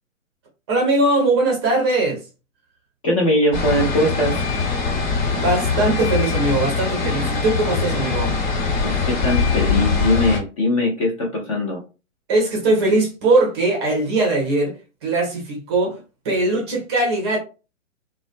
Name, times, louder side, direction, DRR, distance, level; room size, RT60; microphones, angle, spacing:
voice 1, 0.7-2.2 5.3-8.4 12.3-14.7 15.0-16.0 16.2-17.4, right 2 dB, 20° right, 0.6 m, -20 dB
voice 2, 3.0-4.4 8.8-11.8, left 1 dB, 25° left, 0.5 m, -20 dB
sound 1, 3.5-10.4, left 4 dB, 50° left, 1.1 m, -22 dB
2.3 x 2.2 x 2.5 m
hypercardioid pair, 140°, 39 cm